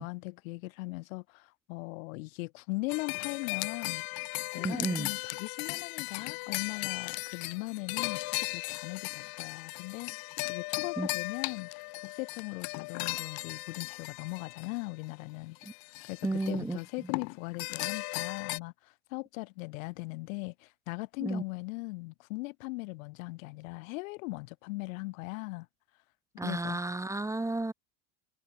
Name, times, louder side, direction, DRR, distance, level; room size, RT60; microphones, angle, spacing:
voice 1, 0.0-4.0 4.5-11.7 12.0-15.6 16.1-25.7 26.4-26.8, left 24 dB, 80° left, 3.5 m, -39 dB
sound 1, 2.9-15.0 15.6-16.8 17.1-18.6, left 27 dB, 60° left, 2.8 m, -37 dB
voice 2, 4.6-5.1 11.0-11.1 15.6-15.7 16.2-16.8 21.2-21.4 26.4-27.7, right 2 dB, 5° right, 2.1 m, -32 dB
supercardioid pair, 125°, 40 cm